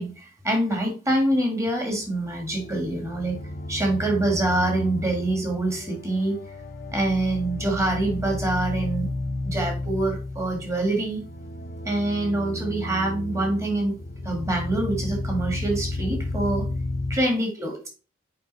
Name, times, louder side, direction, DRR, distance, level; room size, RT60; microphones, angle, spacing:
voice 1, 0.0-3.4 3.7-6.4 6.9-9.1 9.4-11.2 11.8-13.9 14.2-16.6 17.1-17.9, right 2 dB, 15° right, 2 dB, 1.9 m, -25 dB
sound 1, 1.9-17.2, left 2 dB, 50° left, 0.8 m, -33 dB
7.7 x 5.1 x 4.1 m, 0.35 s
head